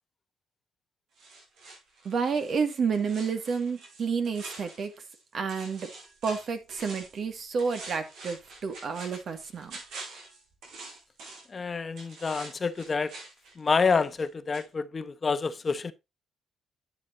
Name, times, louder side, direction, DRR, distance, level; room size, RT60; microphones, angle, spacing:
sound 1, 1.2-5.2 5.5-7.2 7.6-11.6 12.0-14.3 14.5-14.7, right 3 dB, 85° right, 6.0 m, -46 dB
voice 1, 2.0-4.9 5.3-5.9 6.2-9.8, right 5 dB, 55° right, 2.1 m, -30 dB
voice 2, 11.5-13.1 13.6-15.9, left 5 dB, 35° left, 1.0 m, -28 dB
11.5 x 8.4 x 2.7 m
cardioid pair, 90°, 0 cm